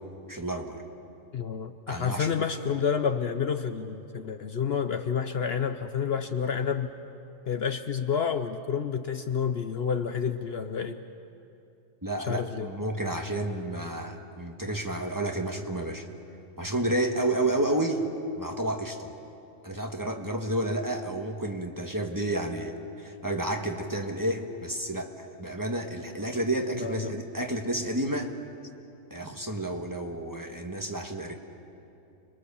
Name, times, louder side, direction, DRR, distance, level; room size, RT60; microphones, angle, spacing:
voice 1, 0.3-0.8 1.9-2.3 12.0-16.1 16.6-18.0 18.4-19.1 19.6-28.3 29.1-31.3, right 1 dB, 15° right, 3 dB, 1.5 m, -30 dB
voice 2, 1.3-6.9 7.5-11.0 12.2-12.7 26.8-27.2, left 7 dB, 55° left, 8 dB, 0.9 m, -29 dB
29.5 x 22.0 x 7.0 m, 2.7 s
omnidirectional pair, 1.3 m